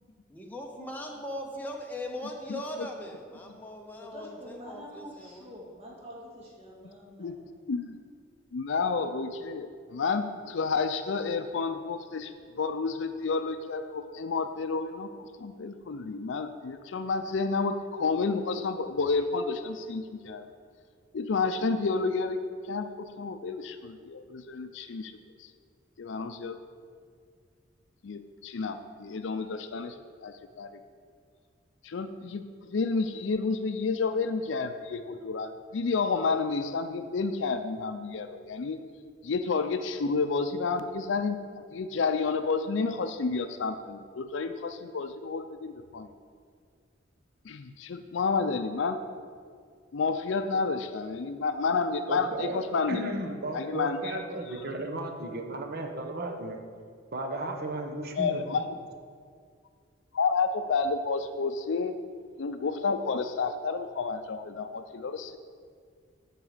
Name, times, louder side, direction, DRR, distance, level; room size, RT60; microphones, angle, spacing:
voice 1, 0.3-5.5, left 1 dB, 10° left, 0 dB, 0.7 m, -39 dB
voice 2, 4.0-7.4, equal, 30° right, -3 dB, 2.1 m, -46 dB
voice 3, 8.5-12.3 12.6-20.4 21.1-22.4 22.6-25.1 25.4-25.5 26.0-26.6 28.0-29.9 30.2-30.7 31.8-38.8 39.2-41.4 41.7-46.1 47.4-49.0 49.9-53.1 53.5-54.2 58.2-58.6 60.1-61.9 62.4-65.4, left 4 dB, 65° left, 9 dB, 0.5 m, -30 dB
voice 4, 52.1-52.6 52.9-56.6 57.1-58.4, right 2 dB, 50° right, 4 dB, 1.0 m, -34 dB
13.5 x 4.8 x 5.0 m, 2.1 s
head